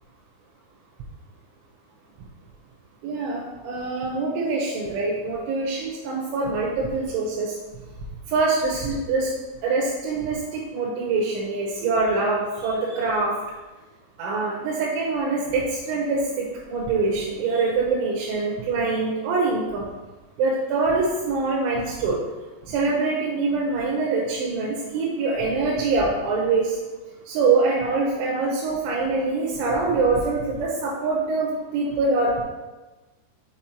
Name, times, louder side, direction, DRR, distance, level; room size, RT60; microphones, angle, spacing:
voice 1, 3.0-7.5 8.3-9.3 9.6-13.3 14.2-19.8 20.4-22.2 22.7-26.7 27.3-32.4, right 3 dB, 90° right, -4 dB, 3.3 m, -24 dB
6.9 x 5.0 x 2.9 m, 1.2 s
omnidirectional pair, 5.3 m